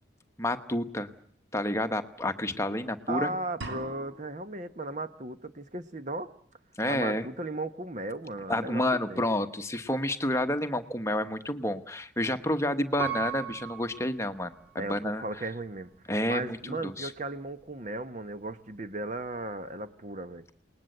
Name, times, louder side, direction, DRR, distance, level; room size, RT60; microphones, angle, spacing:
voice 1, 0.4-1.1 1.5-3.3 6.8-7.3 8.5-15.2 16.1-17.1, left 1 dB, 15° left, 8 dB, 1.1 m, -29 dB
voice 2, 3.1-6.3 6.9-8.8 9.1-9.2 14.8-15.9 16.3-20.4, right 2 dB, 40° right, 10 dB, 1.1 m, -36 dB
sound 1, 3.6-4.6, right 2 dB, 65° right, 3.2 m, -41 dB
Piano, 13.0-15.0 15.5-15.6, right 11 dB, 10° right, 6.0 m, -37 dB
28.5 x 20.0 x 7.9 m, 0.64 s
head